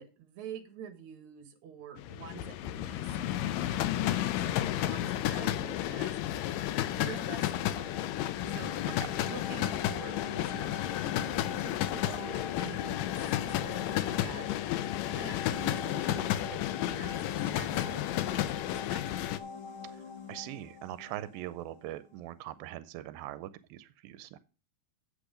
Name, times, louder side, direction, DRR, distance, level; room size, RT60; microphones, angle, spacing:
voice 1, 0.0-6.2 6.9-8.1 8.5-8.7 9.2-10.8 11.1-14.5 15.1-19.0, right 7 dB, 60° right, 7 dB, 2.6 m, -47 dB
sound 1, 2.0-19.4, left 13 dB, 80° left, 2.2 m, -32 dB
sound 2, 7.3-21.9, left 6 dB, 60° left, 2.2 m, -44 dB
voice 2, 19.8-24.4, right 14 dB, 90° right, 14 dB, 2.4 m, -42 dB
8.4 x 8.3 x 5.0 m, 0.33 s
omnidirectional pair, 4.1 m